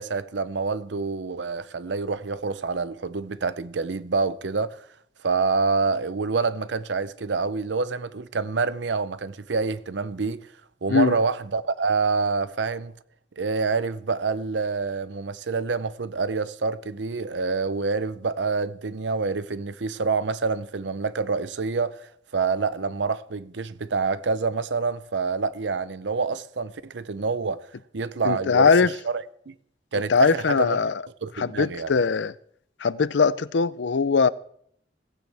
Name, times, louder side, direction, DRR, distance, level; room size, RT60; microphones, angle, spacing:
voice 1, 0.0-4.8 5.2-10.4 10.8-12.9 13.4-27.7 27.9-29.5 29.9-30.8 31.2-31.9, right 4 dB, 85° right, 0.7 m, -27 dB
voice 2, 28.2-28.9 29.9-31.0 31.4-32.3 32.8-34.3, left 5 dB, 90° left, 0.5 m, -21 dB
17.0 x 15.5 x 3.4 m
head